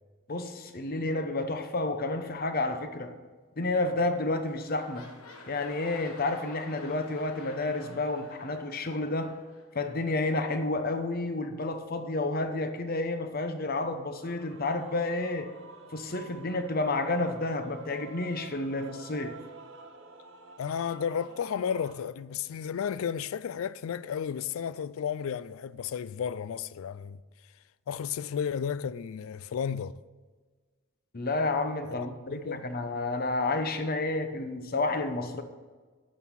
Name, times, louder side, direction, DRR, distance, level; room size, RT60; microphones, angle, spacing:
voice 1, 0.3-3.1 3.6-5.1 5.5-9.4 9.7-15.5 15.9-19.4 31.1-35.4, left 2 dB, 45° left, 0.9 m, -30 dB
sound 1, 3.9-4.1 4.4-10.2 10.9-11.0, left 2 dB, 90° left, 1.4 m, -50 dB
Male singing / Female singing / Musical instrument, 14.2-21.9, right 4 dB, 60° right, 1.2 m, -49 dB
voice 2, 20.6-27.2 27.9-29.9 31.8-32.6, left 7 dB, 70° left, 0.3 m, -33 dB
9.4 x 6.2 x 7.3 m
head